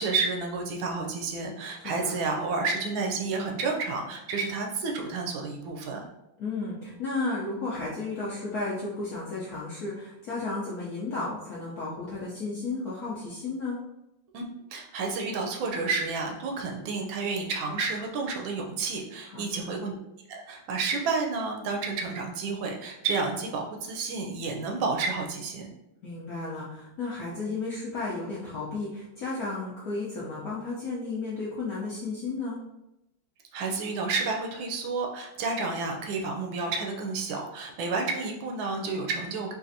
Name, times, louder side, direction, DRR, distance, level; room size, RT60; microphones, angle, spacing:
voice 1, 0.0-6.0 14.3-14.4 14.7-20.0 20.3-25.7 33.5-39.5, right 4 dB, 75° right, 1 dB, 1.3 m, -30 dB
voice 2, 1.8-2.2 6.4-13.8 19.3-19.7 26.0-32.6, left 3 dB, 70° left, -7 dB, 0.8 m, -33 dB
4.1 x 2.4 x 2.6 m, 0.89 s
omnidirectional pair, 2.2 m